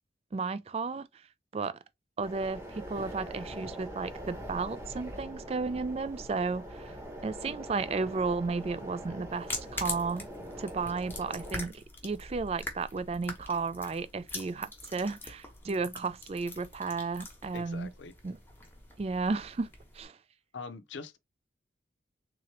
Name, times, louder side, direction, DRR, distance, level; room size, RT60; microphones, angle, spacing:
voice 1, 0.3-1.1 1.5-1.8 2.2-7.0 7.2-10.3 10.6-17.9 18.2-18.4 19.0-20.2, right 4 dB, 35° right, 0.3 m, -33 dB
sound 1, 2.2-11.7, right 1 dB, 15° right, 1.0 m, -43 dB
sound 2, 9.3-20.0, left 2 dB, 10° left, 1.0 m, -43 dB
voice 2, 17.5-18.2 20.5-21.2, left 4 dB, 85° left, 0.6 m, -43 dB
3.7 x 2.9 x 3.2 m
head